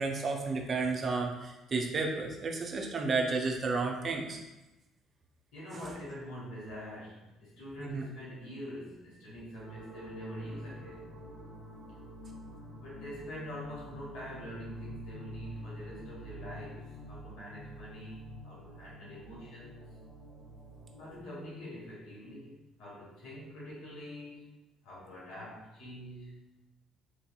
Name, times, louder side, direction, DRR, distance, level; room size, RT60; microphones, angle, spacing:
voice 1, 0.0-4.4 7.8-8.0, right 4 dB, 40° right, 1 dB, 0.5 m, -32 dB
voice 2, 5.5-11.1 12.7-19.8 21.0-24.5 24.8-26.5, equal, 65° left, -6 dB, 1.1 m, -45 dB
sound 1, 9.6-21.2, right 1 dB, 25° right, 1.0 m, -48 dB
3.4 x 2.7 x 2.2 m, 1.0 s
hypercardioid pair, 50°, 0 cm